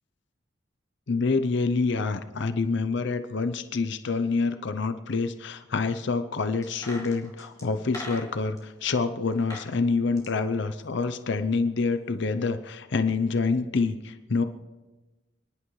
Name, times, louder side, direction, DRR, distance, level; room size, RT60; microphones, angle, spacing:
voice 1, 1.1-14.4, left 4 dB, 65° left, 10 dB, 0.6 m, -27 dB
sound 1, 6.6-8.6 9.3-9.7 10.0-11.4 11.7-11.8, left 1 dB, 20° left, 2.6 m, -42 dB
29.5 x 11.0 x 3.2 m, 1.2 s
head